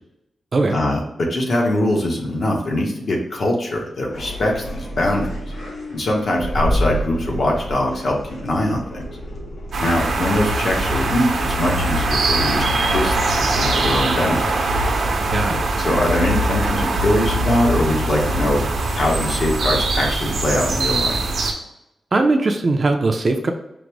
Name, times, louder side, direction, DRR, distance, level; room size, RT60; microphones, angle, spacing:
voice 1, 0.7-5.4 5.9-8.2 8.4-9.0 9.8-14.5 15.8-18.6 19.0-21.2, left 1 dB, 50° left, -1 dB, 1.0 m, -22 dB
sound 1, 4.1-12.7, equal, 75° left, 1.3 m, -37 dB
sound 2, 6.4-12.0, equal, 25° left, 0.8 m, -28 dB
sound 3, 9.7-21.5, right 2 dB, 80° right, 0.7 m, -21 dB
voice 2, 15.3-15.7 22.1-23.5, right 3 dB, 35° right, 5 dB, 0.4 m, -19 dB
5.1 x 2.0 x 4.5 m, 0.88 s
wide cardioid pair, 170°, 0 cm